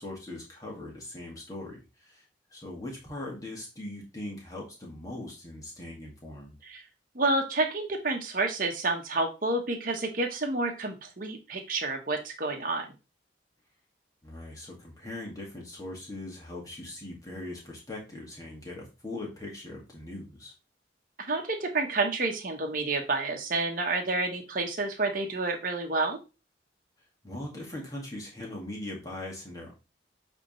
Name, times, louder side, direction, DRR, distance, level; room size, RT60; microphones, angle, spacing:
voice 1, 0.0-1.8 2.1-2.2 2.5-6.5 14.2-20.5 27.2-29.8, left 1 dB, 20° left, -2 dB, 2.2 m, -40 dB
voice 2, 7.1-12.9 21.2-26.2, right 2 dB, 45° right, 3 dB, 1.2 m, -29 dB
8.3 x 3.6 x 3.3 m, 0.29 s
head